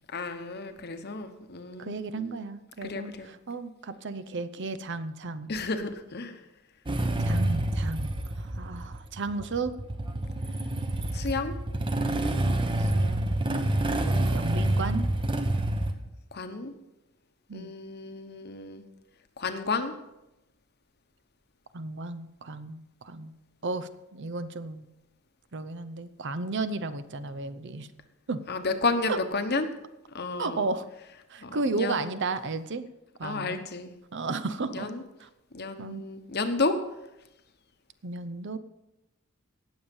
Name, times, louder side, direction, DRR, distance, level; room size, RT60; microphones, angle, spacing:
voice 1, 0.1-2.4 2.8-3.3 5.5-6.3 11.1-11.6 16.3-16.7 17.5-18.8 19.4-19.9 28.5-29.7 30.1-30.6 31.4-32.1 33.2-33.9 34.7-35.0 35.5-36.8, left 3 dB, 50° left, 8 dB, 1.1 m, -32 dB
voice 2, 1.8-5.5 7.2-8.1 8.4-9.7 12.8-13.4 13.9-15.1 17.5-17.7 21.7-23.3 23.6-24.9 25.5-27.9 28.3-28.4 29.1-29.2 30.4-30.9 31.3-32.9 33.2-33.6 34.1-34.9 35.2-35.3 35.8-36.0 38.0-38.6, right 3 dB, 55° right, 12 dB, 0.7 m, -34 dB
Motorcycle / Engine starting, 6.9-15.9, right 1 dB, 25° right, 1.0 m, -28 dB
18.5 x 7.2 x 5.3 m, 0.92 s
head